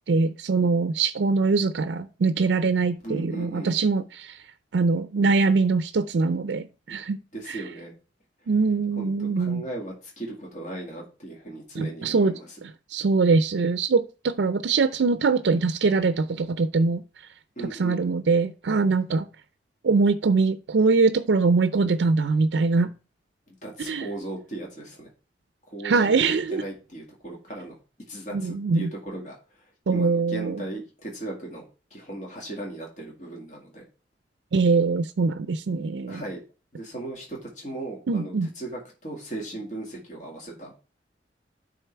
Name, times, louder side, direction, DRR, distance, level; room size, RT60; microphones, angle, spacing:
voice 1, 0.1-4.4 4.7-7.2 7.5-7.6 8.5-9.6 11.7-12.3 12.6-17.0 17.7-19.3 19.8-22.9 23.9-24.1 25.8-26.6 28.3-28.9 29.9-30.6 34.5-36.2 38.1-38.5, right 4 dB, 75° right, 0.5 m, -23 dB
voice 2, 3.0-3.8 7.3-7.9 9.0-12.5 17.6-18.0 23.5-25.1 25.7-27.8 28.1-29.4 29.9-31.7 31.9-33.8 36.1-36.4 36.7-40.7, right 1 dB, 45° left, 2.0 m, -37 dB
9.2 x 3.8 x 4.5 m
head